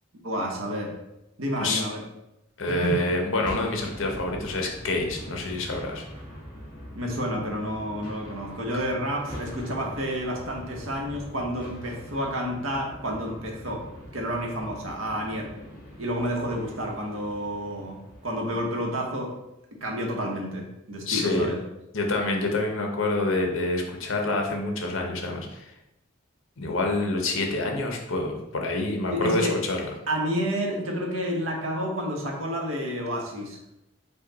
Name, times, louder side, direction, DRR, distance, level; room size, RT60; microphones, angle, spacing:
voice 1, 0.2-0.9 1.4-2.0 2.8-3.0 6.9-13.8 14.1-15.5 16.0-19.3 19.8-21.6 29.1-29.6 30.1-33.6, equal, 80° right, 0 dB, 1.0 m, -30 dB
voice 2, 2.6-6.0 21.1-21.5 21.9-25.7 26.6-29.9, left 2 dB, 75° left, 2 dB, 0.8 m, -27 dB
sound 1, 2.9-19.2, equal, 20° left, 1.3 m, -42 dB
5.5 x 2.3 x 4.0 m, 0.89 s
head